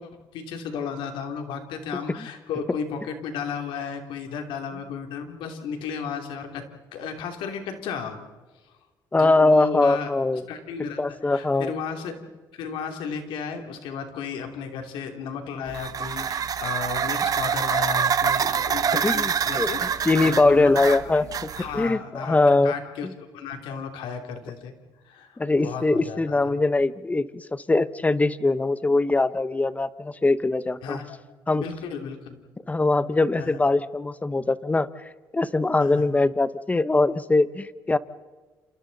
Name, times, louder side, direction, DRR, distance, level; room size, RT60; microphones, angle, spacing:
voice 1, 0.0-6.6 6.9-8.2 9.1-10.1 10.5-12.2 12.5-21.3 21.6-23.1 23.3-24.7 25.0-26.6 30.8-31.2 31.5-32.4 33.4-33.6 35.8-36.1, left 6 dB, 80° left, 5 dB, 3.0 m, -34 dB
voice 2, 9.1-10.4 11.0-11.7 19.0-19.7 20.0-22.7 25.4-31.0 31.5-31.6 32.7-34.9 35.3-38.0, left 2 dB, 20° left, 15 dB, 1.0 m, -22 dB
sound 1, 15.7-21.9, right 7 dB, 45° right, 1.0 m, -26 dB
28.5 x 28.0 x 4.1 m, 1.3 s
cardioid pair, 90°, 8 cm